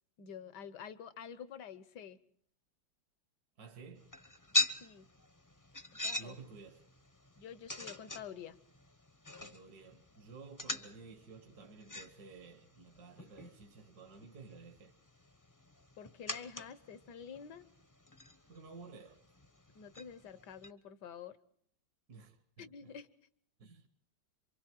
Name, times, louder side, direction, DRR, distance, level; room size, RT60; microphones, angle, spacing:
voice 1, 0.2-2.2 4.8-5.1 6.0-6.3 7.4-8.6 16.0-17.7 19.8-21.4 22.6-23.1, left 7 dB, 65° left, 1.6 m, -48 dB
voice 2, 3.6-4.2 6.2-6.9 9.4-14.9 18.5-19.2 22.1-22.9 23.6-23.9, right 4 dB, 55° right, 1.8 m, -53 dB
sound 1, 4.0-20.7, left 1 dB, 15° left, 0.8 m, -43 dB
27.5 x 24.5 x 4.6 m
omnidirectional pair, 2.0 m